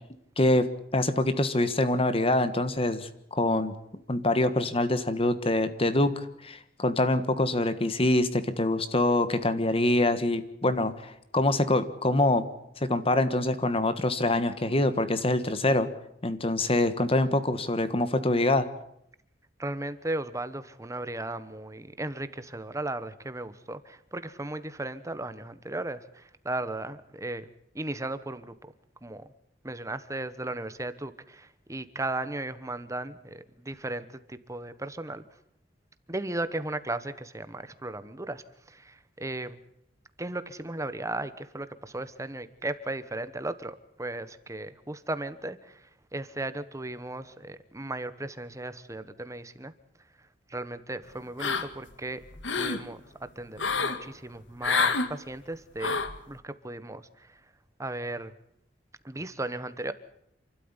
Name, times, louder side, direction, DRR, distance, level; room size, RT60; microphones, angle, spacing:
voice 1, 0.4-0.7 0.9-3.7 4.1-12.4 12.8-15.9 16.2-18.7, left 2 dB, 30° left, 11 dB, 1.4 m, -25 dB
voice 2, 19.6-27.5 27.7-28.5 29.0-29.2 29.6-35.2 36.1-38.4 38.7-39.6 40.2-45.8 46.1-49.7 50.5-52.2 52.6-56.0 56.3-57.4 57.8-58.3 59.0-59.9, right 2 dB, 15° right, 13 dB, 1.2 m, -36 dB
sound 1, 51.4-51.9 52.3-52.8 53.6-54.0 54.6-55.1 55.8-56.2, left 4 dB, 90° left, 1.9 m, -27 dB
28.0 x 12.5 x 9.8 m, 0.77 s
head